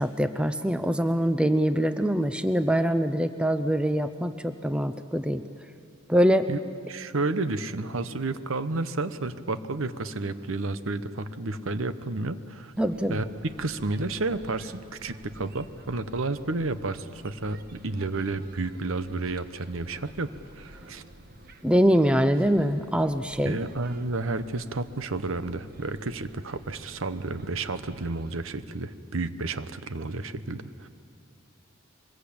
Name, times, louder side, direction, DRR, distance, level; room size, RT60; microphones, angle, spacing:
voice 1, 0.0-5.4 6.1-6.5 12.8-13.2 21.6-23.6, equal, 5° right, 10 dB, 0.5 m, -24 dB
voice 2, 6.9-12.7 13.1-21.0 23.4-30.9, right 3 dB, 65° right, 12 dB, 0.9 m, -31 dB
sound 1, 12.7-28.3, right 1 dB, 45° right, 1.3 m, -51 dB
24.0 x 21.0 x 8.6 m, 2.4 s
head